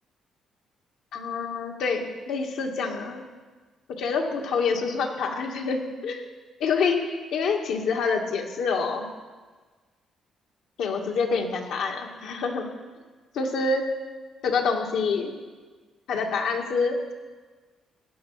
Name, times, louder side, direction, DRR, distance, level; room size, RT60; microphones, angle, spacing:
voice 1, 1.1-3.2 4.0-6.2 6.6-9.1 10.8-12.7 13.4-13.8 14.4-15.3 16.1-17.1, left 4 dB, 80° left, 1 dB, 2.0 m, -27 dB
16.0 x 10.5 x 5.7 m, 1.4 s
cardioid pair, 90°, 0 cm